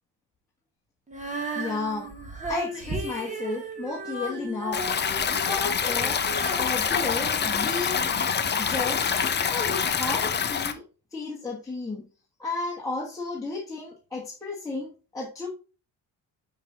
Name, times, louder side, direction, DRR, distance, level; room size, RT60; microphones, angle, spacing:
Female singing, 1.1-8.1 8.8-8.9, right 2 dB, 20° right, 1.3 m, -35 dB
voice 1, 1.5-2.1 2.5-4.8 5.3-6.2 6.5-8.1 8.6-9.2 9.5-10.8 11.1-12.0 12.4-15.5, left 3 dB, 10° left, -6 dB, 1.4 m, -33 dB
Stream, 4.7-10.7, left 6 dB, 25° left, 0.6 m, -26 dB
5.9 x 5.6 x 2.9 m, 0.34 s
cardioid pair, 145°, 40 cm